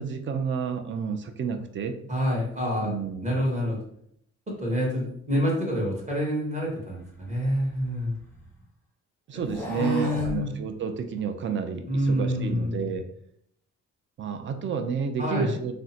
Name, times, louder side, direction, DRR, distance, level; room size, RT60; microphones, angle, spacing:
voice 1, 0.0-2.0 2.8-3.5 9.3-13.1 14.2-15.8, right 6 dB, 40° right, 7 dB, 0.4 m, -30 dB
voice 2, 2.1-2.9 3.2-3.8 4.6-8.1 9.8-10.5 11.9-12.8 15.2-15.5, equal, 25° right, -3 dB, 1.4 m, -27 dB
sound 1, 7.1-8.6 9.4-10.4, left 1 dB, 5° left, 1.0 m, -38 dB
3.6 x 2.1 x 2.8 m, 0.70 s
cardioid pair, 90°, 30 cm